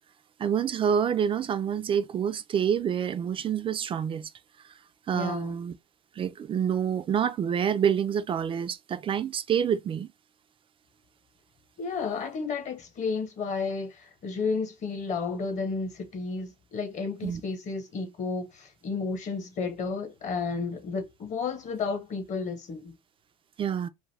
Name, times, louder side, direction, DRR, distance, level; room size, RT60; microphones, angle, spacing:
voice 1, 0.4-4.3 5.1-5.8 6.2-10.1 17.2-17.4 23.6-23.9, right 8 dB, 30° right, 0.4 m, -27 dB
voice 2, 5.1-5.5 11.8-22.9, left 4 dB, 40° left, 1.0 m, -32 dB
2.6 x 2.4 x 3.2 m
supercardioid pair, 95°, 19 cm